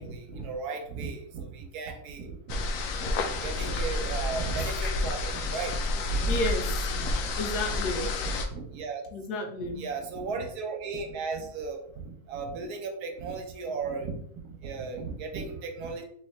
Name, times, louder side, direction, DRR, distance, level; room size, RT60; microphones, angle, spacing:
voice 1, 0.0-2.6 3.2-6.4 6.9-7.3 8.0-9.0 9.6-16.0, right 4 dB, 85° right, 4 dB, 1.2 m, -36 dB
sound 1, 2.5-8.5, left 2 dB, 70° left, 0.9 m, -30 dB
voice 2, 3.0-3.3 4.6-4.7 6.3-6.9 7.4-8.1 9.1-9.8, left 2 dB, 90° left, 4 dB, 1.3 m, -32 dB
3.4 x 3.2 x 3.1 m, 0.67 s
omnidirectional pair, 1.6 m